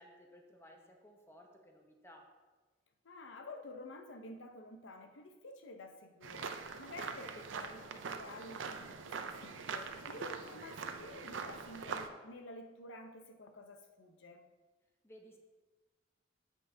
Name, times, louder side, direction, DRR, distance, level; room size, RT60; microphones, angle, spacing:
voice 1, 0.0-2.3 15.0-15.4, equal, 15° left, 2 dB, 0.8 m, -58 dB
voice 2, 3.0-14.5, left 2 dB, 90° left, 6 dB, 0.8 m, -51 dB
sound 1, 6.2-12.1, right 5 dB, 85° right, 0.5 m, -43 dB
8.8 x 7.3 x 2.7 m, 1.3 s
head